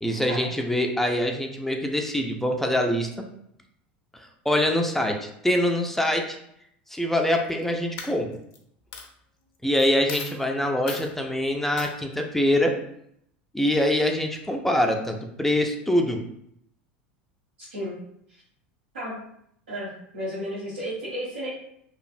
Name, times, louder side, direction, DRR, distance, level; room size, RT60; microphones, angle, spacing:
voice 1, 0.0-3.1 4.2-6.4 6.9-8.3 9.6-12.7 13.5-16.2, left 1 dB, 5° left, 2 dB, 0.4 m, -24 dB
Coin (dropping), 7.3-7.6 8.0-8.6 8.9-9.0 9.8-9.9 10.1-10.4 10.9-11.1 11.8-11.9, left 5 dB, 55° left, 0.6 m, -36 dB
voice 2, 17.6-17.9 18.3-18.4 18.9-19.2 19.7-21.5, equal, 85° right, -9 dB, 1.0 m, -33 dB
3.1 x 2.4 x 2.6 m, 0.72 s
hypercardioid pair, 85°, 6 cm